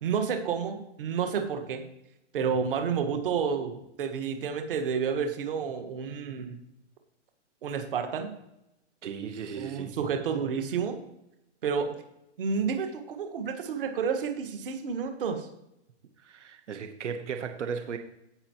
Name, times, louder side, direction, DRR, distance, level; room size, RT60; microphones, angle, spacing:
voice 1, 0.0-1.8 2.3-6.6 7.6-8.3 9.6-11.0 11.6-11.9 12.4-15.5, right 6 dB, 50° right, 5 dB, 1.5 m, -30 dB
voice 2, 9.0-9.9 16.2-18.0, right 6 dB, 80° right, 7 dB, 1.1 m, -36 dB
16.5 x 5.6 x 3.0 m, 0.85 s
hypercardioid pair, 170°, 36 cm